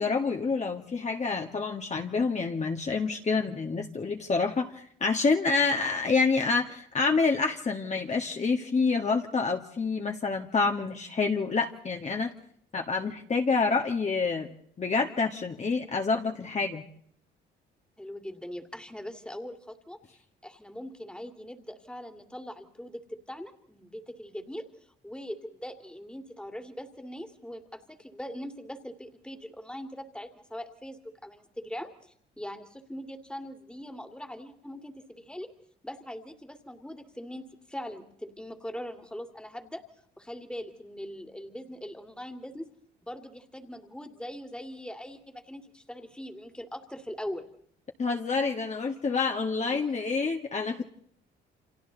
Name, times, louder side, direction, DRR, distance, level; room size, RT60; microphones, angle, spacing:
voice 1, 0.0-12.3 12.7-14.5 14.8-16.8 48.0-50.8, left 4 dB, 35° left, 3 dB, 1.8 m, -27 dB
voice 2, 18.0-20.0 20.4-24.7 25.0-31.9 32.4-35.5 35.8-39.8 40.2-42.7 43.0-47.5 49.7-49.9, equal, 5° left, 7 dB, 2.5 m, -41 dB
29.5 x 26.0 x 4.1 m, 0.64 s
cardioid pair, 90°, 20 cm